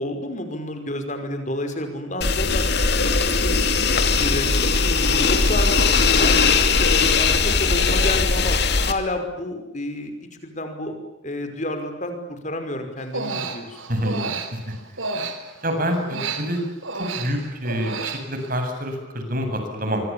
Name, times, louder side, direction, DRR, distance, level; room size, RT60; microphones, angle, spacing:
voice 1, 0.0-2.6 3.0-3.8 4.1-5.8 6.2-8.6 8.9-10.9 11.2-13.8, left 1 dB, 40° left, 7 dB, 5.5 m, -30 dB
sound 1, 2.2-8.9, left 4 dB, 55° left, 2.7 m, -19 dB
Human voice, 13.0-15.7 16.1-18.6, right 4 dB, 90° right, 4.0 m, -31 dB
voice 2, 13.9-14.3 14.5-14.7 15.6-16.6 16.9-20.0, equal, 45° right, 5 dB, 7.9 m, -27 dB
27.0 x 24.5 x 7.2 m, 0.99 s
head